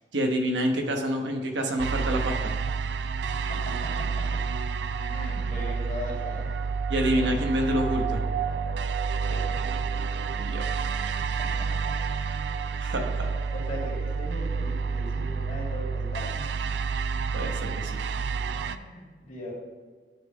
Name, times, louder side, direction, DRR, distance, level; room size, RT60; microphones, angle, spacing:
voice 1, 0.1-2.5 6.9-8.2 10.4-10.6 12.8-13.3 17.3-18.0, equal, 85° right, 3 dB, 1.1 m, -27 dB
sound 1, 1.8-18.8, right 5 dB, 70° right, 0.4 m, -29 dB
voice 2, 3.4-4.4 5.0-6.6 9.3-9.5 11.3-11.9 13.0-16.5 18.5-19.5, left 1 dB, 45° left, -3 dB, 2.3 m, -39 dB
10.0 x 4.3 x 4.9 m, 1.5 s
head